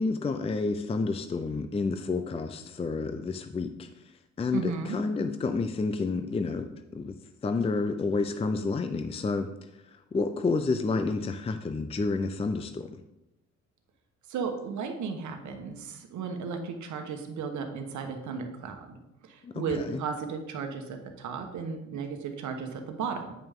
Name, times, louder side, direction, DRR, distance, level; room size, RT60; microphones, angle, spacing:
voice 1, 0.0-7.1 7.4-13.0 19.4-20.0, left 3 dB, 20° left, 8 dB, 0.4 m, -30 dB
voice 2, 4.5-5.0 14.3-19.0 19.2-23.3, right 5 dB, 75° right, 5 dB, 1.2 m, -35 dB
9.0 x 5.5 x 3.6 m, 0.90 s
cardioid pair, 90°, 30 cm